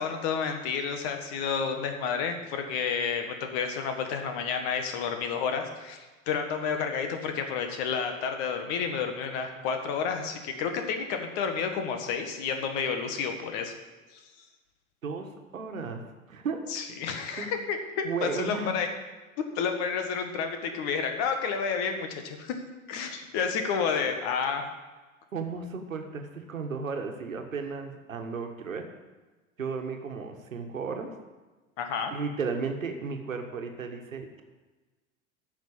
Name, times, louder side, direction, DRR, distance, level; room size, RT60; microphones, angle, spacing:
voice 1, 0.0-13.7 14.1-14.2 16.7-18.9 19.6-22.6 22.9-24.6 31.8-32.1, left 6 dB, 50° left, 5 dB, 1.7 m, -30 dB
voice 2, 15.5-16.0 16.3-16.6 17.4-17.5 18.0-18.8 25.3-28.9 29.6-31.1 32.1-34.4, right 5 dB, 80° right, 5 dB, 1.5 m, -34 dB
10.0 x 6.5 x 8.5 m, 1.2 s
figure-of-eight pair, 80°, 40 cm